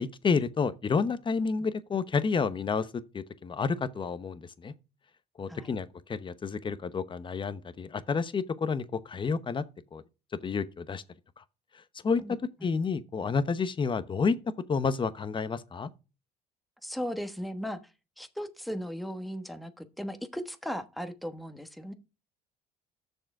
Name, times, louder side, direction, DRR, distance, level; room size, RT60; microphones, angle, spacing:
voice 1, 0.0-4.7 5.4-9.6 9.9-10.0 10.4-11.0 11.4-11.5 11.7-14.4 14.7-15.9, left 5 dB, 30° left, 0.9 m, -30 dB
voice 2, 16.8-17.8 18.2-21.9, equal, ahead, 1.1 m, -37 dB
6.7 x 6.4 x 4.7 m
cardioid pair, 110°, 17 cm